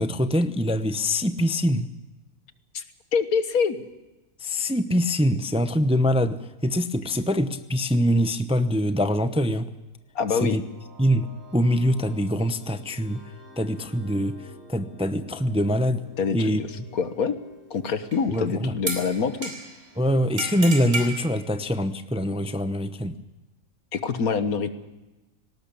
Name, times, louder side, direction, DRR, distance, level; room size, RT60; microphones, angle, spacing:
voice 1, 0.0-1.9 4.4-9.7 10.4-10.6 11.0-11.3 11.5-13.2 13.6-14.4 14.7-16.0 16.3-16.6 18.3-18.7 20.0-23.2, equal, 5° right, 10 dB, 0.5 m, -24 dB
voice 2, 3.1-3.9 10.2-10.6 16.2-17.3 17.7-19.5 23.9-24.7, left 5 dB, 75° left, 10 dB, 1.8 m, -25 dB
sound 1, 10.0-20.8, left 1 dB, 40° right, 7.9 m, -50 dB
sound 2, 18.1-18.4 18.9-19.8 20.4-21.2, right 2 dB, 55° right, 4.4 m, -31 dB
19.0 x 18.0 x 8.5 m, 1.1 s
omnidirectional pair, 1.6 m